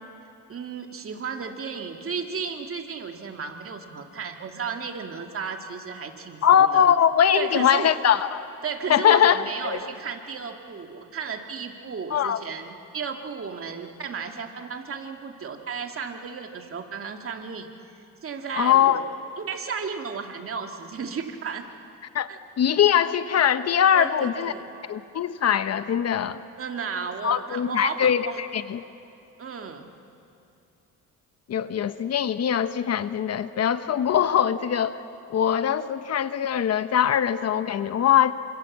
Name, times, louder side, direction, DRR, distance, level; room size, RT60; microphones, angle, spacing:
voice 1, 0.5-6.9 7.4-7.9 8.6-17.7 18.2-19.1 19.4-21.7 22.3-22.4 23.9-24.7 26.6-28.4 29.4-29.9, right 5 dB, 40° right, 4 dB, 2.4 m, -34 dB
voice 2, 6.4-8.5 8.9-9.8 12.1-12.4 18.5-19.0 22.1-24.5 24.9-26.4 27.2-28.8 31.5-35.0 35.3-38.3, left 9 dB, 50° left, 12 dB, 1.0 m, -22 dB
28.5 x 26.0 x 7.4 m, 2.6 s
cardioid pair, 100°, 33 cm